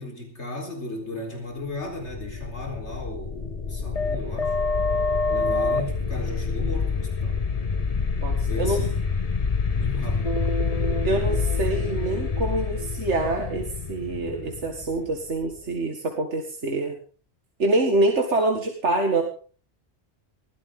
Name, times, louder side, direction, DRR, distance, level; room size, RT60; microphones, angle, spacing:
voice 1, 0.0-4.6 5.3-7.4 8.5-9.0 9.7-10.4, left 2 dB, 80° left, 3 dB, 4.7 m, -35 dB
sound 1, 1.9-15.6, left 4 dB, 35° left, 1.0 m, -26 dB
voice 2, 8.2-8.9 11.0-17.0 17.6-19.2, right 2 dB, 85° right, 2 dB, 2.3 m, -25 dB
21.0 x 15.5 x 3.8 m, 0.41 s
omnidirectional pair, 1.2 m